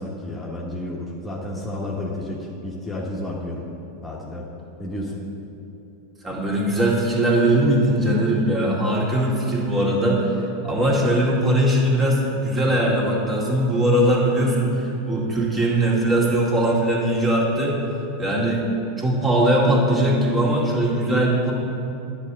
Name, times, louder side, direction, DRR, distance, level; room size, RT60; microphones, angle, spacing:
voice 1, 0.0-3.6 4.0-4.5 4.8-5.3, left 1 dB, 15° left, -4 dB, 1.3 m, -31 dB
voice 2, 6.2-10.4 10.6-17.8 18.2-18.6 19.0-21.5, right 1 dB, 20° right, -4 dB, 2.3 m, -20 dB
9.7 x 4.3 x 7.6 m, 2.9 s
hypercardioid pair, 90°, 0 cm